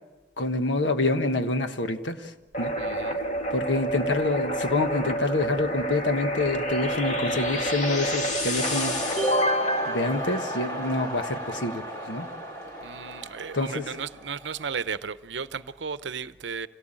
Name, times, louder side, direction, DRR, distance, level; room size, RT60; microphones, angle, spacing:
voice 1, 0.4-2.3 2.6-2.7 3.5-9.0 9.9-12.3 13.5-13.9, left 2 dB, 80° left, 1.4 m, -27 dB
sound 1, 2.5-11.2, equal, 40° left, 2.3 m, -28 dB
voice 2, 2.8-3.2 12.8-16.7, right 6 dB, 75° right, 0.8 m, -34 dB
sound 2, 8.6-14.8, equal, 20° left, 3.5 m, -35 dB
26.0 x 17.5 x 8.9 m
head